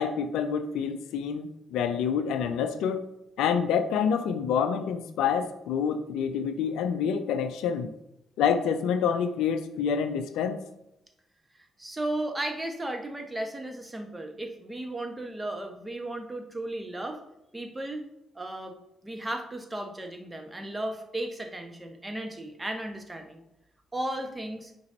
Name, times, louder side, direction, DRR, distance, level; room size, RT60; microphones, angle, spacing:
voice 1, 0.0-3.0 3.4-7.9 8.4-10.6, left 7 dB, 70° left, 10 dB, 0.5 m, -27 dB
voice 2, 11.8-17.2 17.5-18.0 18.3-18.8 19.0-23.4 23.9-24.7, right 1 dB, 20° right, 5 dB, 1.4 m, -35 dB
9.5 x 5.3 x 2.9 m, 0.88 s
hypercardioid pair, 40°, 0 cm